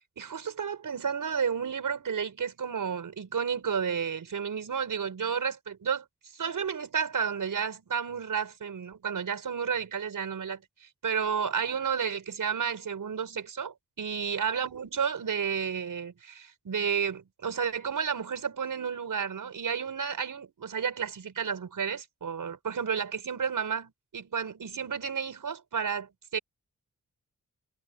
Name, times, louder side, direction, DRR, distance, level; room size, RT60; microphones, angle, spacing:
voice 1, 0.2-6.1 6.3-26.4, right 7 dB, 85° right, 5.4 m, -32 dB
wide cardioid pair, 165°, 32 cm